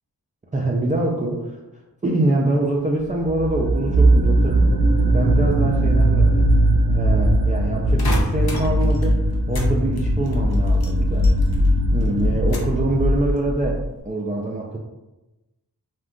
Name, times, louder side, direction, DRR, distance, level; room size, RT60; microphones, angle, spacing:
voice 1, 0.5-1.6 2.0-4.8 5.1-6.5 6.9-9.2 9.5-11.3 11.9-14.8, right 2 dB, 20° right, -3 dB, 0.3 m, -24 dB
sound 1, 3.2-13.9, right 1 dB, 65° right, 0.5 m, -19 dB
sound 2, 8.0-9.7 10.0-11.7 12.0-12.8 13.3-13.8, left 1 dB, 65° left, 0.7 m, -32 dB
2.4 x 2.2 x 3.6 m, 1.0 s
wide cardioid pair, 50°, 39 cm